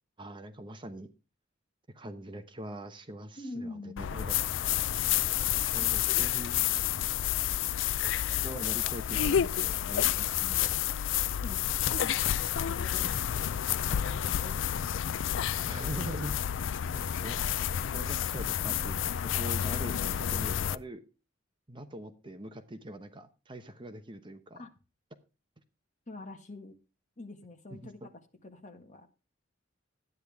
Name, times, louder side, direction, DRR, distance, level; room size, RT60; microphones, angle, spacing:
voice 1, 0.2-1.1 1.9-4.4 5.7-6.6 8.4-10.1 15.7-16.6 16.9-17.5 17.9-21.0 21.7-24.6 27.8-28.1, right 1 dB, 25° right, 9 dB, 1.0 m, -43 dB
voice 2, 3.4-4.1 5.7-5.9 10.1-11.0 11.4-13.1 13.7-15.0 24.5-24.7 26.1-26.8 27.2-28.0 28.4-29.1, left 2 dB, 40° left, 6 dB, 1.7 m, -45 dB
sound 1, 4.0-20.8, left 10 dB, 75° left, 0.4 m, -30 dB
12.5 x 9.6 x 3.5 m, 0.31 s
head